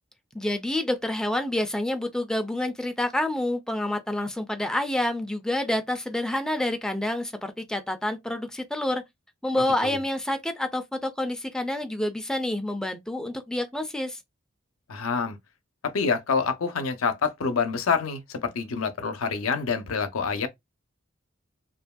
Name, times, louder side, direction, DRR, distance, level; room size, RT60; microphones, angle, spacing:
voice 1, 0.3-9.0 9.4-14.2, left 1 dB, 5° left, 0.4 m, -28 dB
voice 2, 14.9-15.4 15.8-20.5, left 5 dB, 85° left, 0.6 m, -27 dB
2.8 x 2.5 x 2.2 m
head